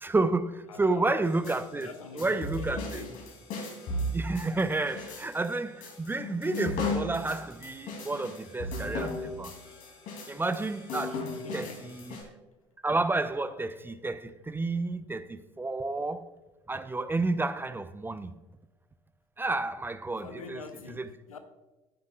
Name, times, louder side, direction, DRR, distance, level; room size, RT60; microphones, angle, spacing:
voice 1, 0.0-1.9 2.2-3.0 4.1-9.5 10.3-11.2 11.5-12.2 12.8-16.2 16.7-18.3 19.4-20.6 21.0-21.1, right 3 dB, 10° right, 0.5 m, -30 dB
voice 2, 0.7-1.1 1.7-3.2 11.1-11.9 20.2-21.4, left 4 dB, 80° left, 0.8 m, -44 dB
sound 1, 1.2-12.2, left 2 dB, 50° left, 2.6 m, -36 dB
11.5 x 9.5 x 2.3 m
figure-of-eight pair, 60°, 17 cm